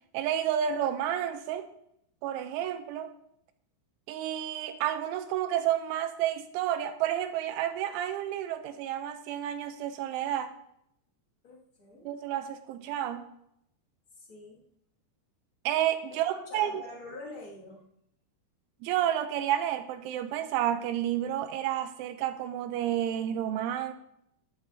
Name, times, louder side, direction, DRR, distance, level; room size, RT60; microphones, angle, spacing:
voice 1, 0.1-1.7 2.2-3.1 4.1-10.5 12.1-13.3 15.7-16.8 18.8-23.9, right 11 dB, 80° right, 9 dB, 2.9 m, -30 dB
voice 2, 11.4-12.1 14.1-14.6 16.3-17.8, left 2 dB, 45° left, -5 dB, 1.7 m, -45 dB
14.5 x 11.0 x 2.7 m, 0.76 s
omnidirectional pair, 5.8 m